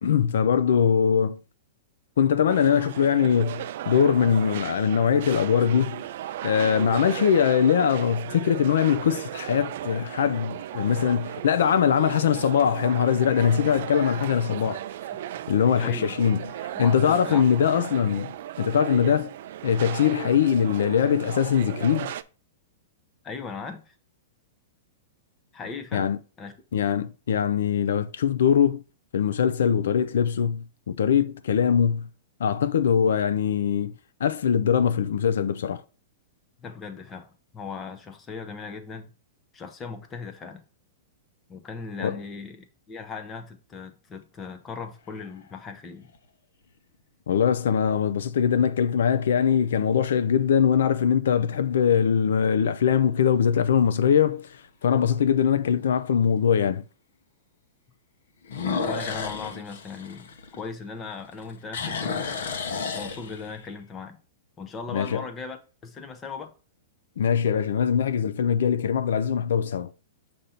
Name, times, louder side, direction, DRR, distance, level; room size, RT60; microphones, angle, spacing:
voice 1, 0.0-1.4 2.2-6.0 6.4-14.8 15.5-16.4 16.8-18.3 18.6-19.3 19.6-22.1 25.9-26.2 26.7-28.8 29.1-32.1 32.4-33.9 34.2-35.8 42.0-42.2 47.3-56.8 64.9-65.2 67.2-69.9, left 8 dB, 80° left, 0.4 m, -22 dB
sound 1, 2.5-22.2, right 12 dB, 50° right, 0.3 m, -36 dB
voice 2, 15.6-16.2 16.7-17.4 23.2-24.0 25.5-26.1 26.4-26.5 36.6-39.1 39.5-40.6 41.5-46.1 58.8-62.3 62.9-64.2 64.6-66.5, left 5 dB, 15° left, 0.6 m, -38 dB
sound 2, 44.8-45.5 46.1-46.2 51.5-51.9 52.4-52.5 53.1-53.2 53.4-53.5 55.0-55.1 58.4-61.0 61.3-63.7, left 5 dB, 65° left, 0.8 m, -32 dB
6.7 x 2.6 x 5.6 m
supercardioid pair, 175°, 0 cm